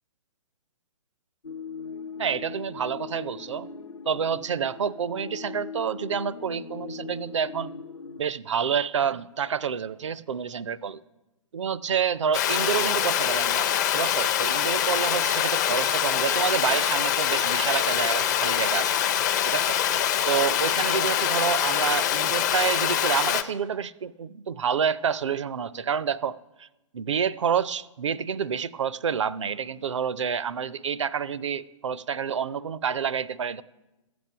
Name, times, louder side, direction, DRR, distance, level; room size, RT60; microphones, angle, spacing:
sound 1, 1.4-8.2, left 5 dB, 65° left, 0.8 m, -40 dB
voice 1, 2.2-3.7 4.1-7.7 8.2-11.0 11.5-19.0 19.4-19.8 20.3-26.7 26.9-33.6, right 7 dB, 60° right, 0.4 m, -28 dB
Water, 12.3-23.4, left 10 dB, 30° left, 0.5 m, -24 dB
13.0 x 7.8 x 5.6 m
figure-of-eight pair, 125°, 18 cm